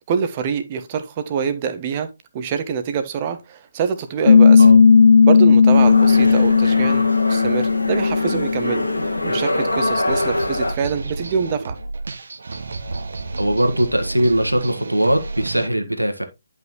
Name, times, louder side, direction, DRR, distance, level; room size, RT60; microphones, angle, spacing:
voice 1, 0.0-4.7 5.2-11.8, right 6 dB, 25° right, 1.1 m, -25 dB
Piano, 4.3-9.4, left 5 dB, 45° left, 0.3 m, -14 dB
sound 1, 5.7-10.7, left 1 dB, 80° left, 2.1 m, -24 dB
sound 2, 10.1-15.7, right 3 dB, 55° right, 1.1 m, -31 dB
voice 2, 13.4-16.2, right 1 dB, 85° right, 1.6 m, -20 dB
11.0 x 5.5 x 3.0 m
figure-of-eight pair, 145°, 0 cm